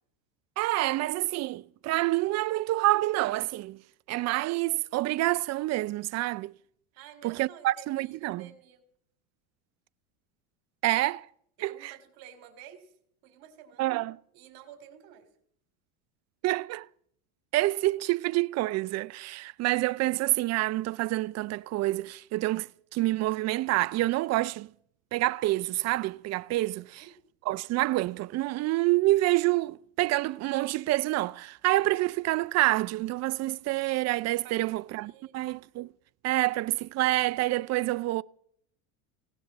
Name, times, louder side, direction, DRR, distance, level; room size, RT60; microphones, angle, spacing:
voice 1, 0.6-3.8 4.1-6.5 7.2-8.4 10.8-11.3 11.6-11.9 13.8-14.2 16.4-16.9 17.5-24.7 25.1-27.0 27.5-35.9 36.2-38.2, right 18 dB, 40° right, 0.5 m, -27 dB
voice 2, 7.0-8.8 11.6-12.9 13.2-14.0 14.3-15.3 26.5-27.1 34.3-35.5, right 9 dB, 55° right, 3.2 m, -51 dB
18.0 x 17.0 x 4.1 m
supercardioid pair, 105°, 42 cm